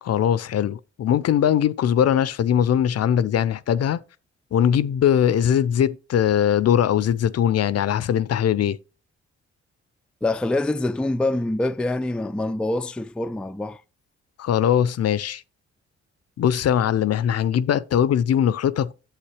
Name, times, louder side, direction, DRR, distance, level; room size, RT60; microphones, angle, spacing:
voice 1, 0.0-4.0 4.5-8.8 14.4-15.4 16.4-18.9, left 9 dB, 60° left, 0.5 m, -21 dB
voice 2, 10.2-13.8, left 2 dB, 5° left, 0.3 m, -25 dB
8.8 x 7.7 x 3.2 m
supercardioid pair, 55°, 29 cm